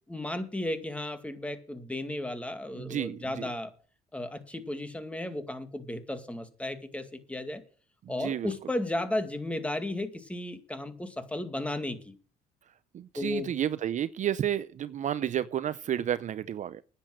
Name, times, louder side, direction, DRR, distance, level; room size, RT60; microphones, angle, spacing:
voice 1, 0.1-3.7 4.1-7.6 8.1-12.1 13.2-13.5, left 1 dB, 5° left, 2.2 m, -34 dB
voice 2, 2.7-3.5 8.0-8.5 12.9-16.8, right 10 dB, 45° right, 0.6 m, -31 dB
10.0 x 8.7 x 7.7 m
cardioid pair, 110°, 17 cm